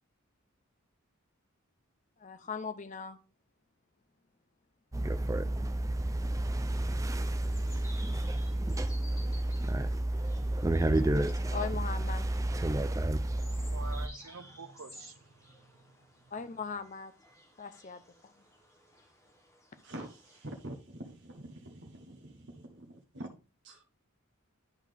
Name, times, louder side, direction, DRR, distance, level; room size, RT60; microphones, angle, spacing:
voice 1, 2.2-3.2 11.0-12.3 16.3-17.1 17.6-18.4, left 5 dB, 35° left, 0.6 m, -40 dB
sound 1, 4.9-14.1, right 1 dB, 15° right, 0.4 m, -30 dB
sound 2, 7.3-20.5, left 1 dB, 15° left, 1.3 m, -56 dB
voice 2, 13.1-16.3, right 4 dB, 85° right, 0.8 m, -49 dB
voice 3, 19.8-23.3 23.6-23.8, right 1 dB, 55° right, 1.1 m, -46 dB
11.0 x 4.0 x 3.4 m
head